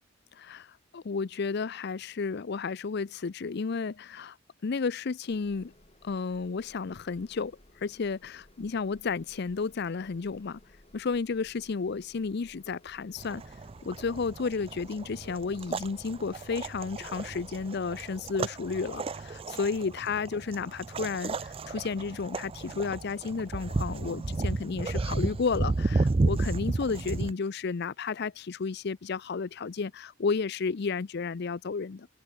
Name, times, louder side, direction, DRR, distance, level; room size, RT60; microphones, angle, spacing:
voice 1, 0.4-0.7 0.9-4.4 4.6-5.7 6.0-10.6 10.9-13.4 13.8-32.1, left 4 dB, 55° left, 0.5 m, -32 dB
sound 1, 5.3-17.7, left 1 dB, 30° left, 2.7 m, -59 dB
sound 2, 13.2-27.3, right 3 dB, 30° right, 0.4 m, -33 dB
open air
head